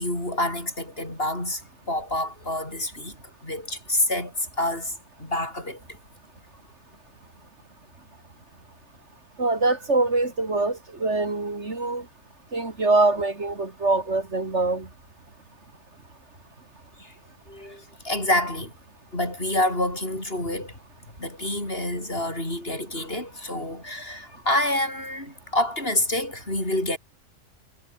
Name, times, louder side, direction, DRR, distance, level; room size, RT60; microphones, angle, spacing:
voice 1, 0.0-1.6 1.9-3.2 3.4-5.8 17.0-17.1 17.5-18.7 19.1-20.7 21.2-27.0, left 1 dB, 50° left, 7.5 m, -27 dB
voice 2, 9.4-12.0 12.5-14.9, right 2 dB, 65° right, 3.6 m, -24 dB
omnidirectional pair, 1.3 m